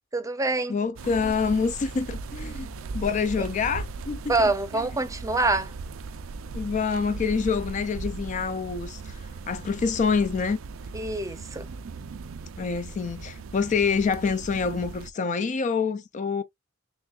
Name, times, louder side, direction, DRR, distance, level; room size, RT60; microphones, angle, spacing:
voice 1, 0.1-0.8 4.3-5.7 10.9-11.7, right 2 dB, 15° right, 0.6 m, -25 dB
voice 2, 0.7-2.7 2.9-4.9 6.5-10.6 12.6-16.4, left 5 dB, 35° left, 0.3 m, -27 dB
sound 1, 1.0-15.1, right 4 dB, 85° right, 0.5 m, -38 dB
6.1 x 2.3 x 2.3 m
head